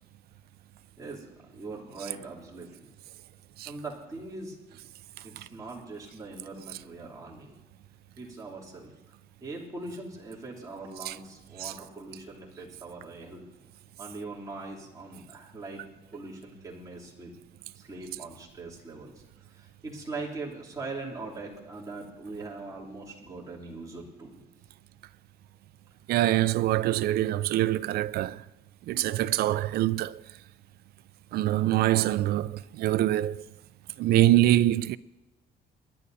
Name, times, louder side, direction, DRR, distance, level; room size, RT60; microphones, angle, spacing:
voice 1, 1.0-2.9 3.6-4.8 5.2-7.6 8.2-8.9 9.4-13.4 14.0-15.8 16.1-17.3 17.7-19.2 19.5-24.3, right 3 dB, 20° right, 2.9 m, -41 dB
voice 2, 26.1-28.4 28.9-30.2 31.3-33.4 34.0-35.0, right 14 dB, 65° right, 0.4 m, -24 dB
27.0 x 11.0 x 2.7 m
cardioid pair, 125°, 17 cm